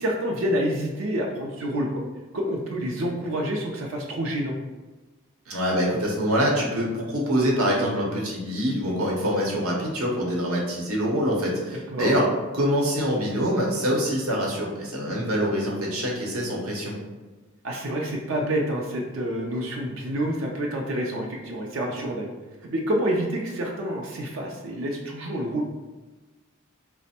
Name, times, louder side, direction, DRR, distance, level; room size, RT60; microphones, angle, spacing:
voice 1, 0.0-2.0 2.3-4.5 11.6-12.1 17.6-22.3 22.7-25.6, right 1 dB, 65° right, 0 dB, 0.4 m, -28 dB
voice 2, 5.5-12.2 12.5-16.9, equal, 85° right, -2 dB, 0.9 m, -25 dB
3.2 x 2.1 x 4.2 m, 1.2 s
head